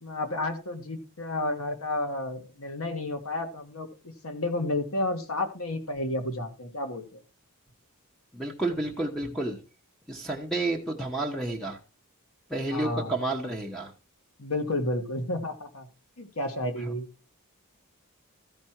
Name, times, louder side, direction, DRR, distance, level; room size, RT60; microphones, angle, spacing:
voice 1, 0.0-7.2 12.7-13.1 14.4-15.9 16.2-17.0, left 2 dB, 70° left, 6 dB, 1.6 m, -31 dB
voice 2, 8.3-9.6 10.1-11.8 12.5-13.9 16.8-16.9, right 2 dB, ahead, 2 dB, 1.1 m, -30 dB
14.0 x 5.3 x 4.5 m, 0.32 s
head